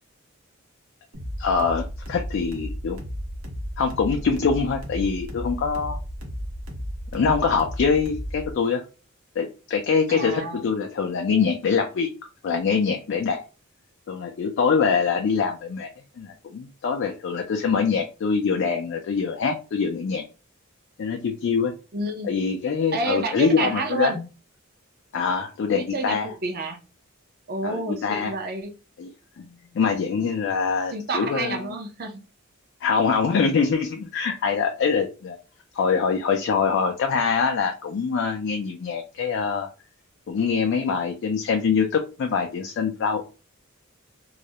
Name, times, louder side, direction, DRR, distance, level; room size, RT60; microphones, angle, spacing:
sound 1, 1.1-8.5, equal, 85° right, 0.8 m, -34 dB
voice 1, 1.4-3.0 3.8-6.0 7.1-8.8 9.4-12.1 12.4-13.4 14.1-15.9 16.2-20.2 21.0-21.7 22.2-24.3 25.1-26.3 27.6-28.4 29.0-31.7 32.8-35.4 35.8-39.7 40.3-43.2, left 5 dB, 60° left, 4 dB, 0.3 m, -24 dB
voice 2, 10.1-10.6 21.9-22.3 22.9-24.2 25.7-26.8 27.5-28.7 30.9-32.2, right 2 dB, 50° right, 5 dB, 0.5 m, -29 dB
2.3 x 2.0 x 2.7 m, 0.32 s
head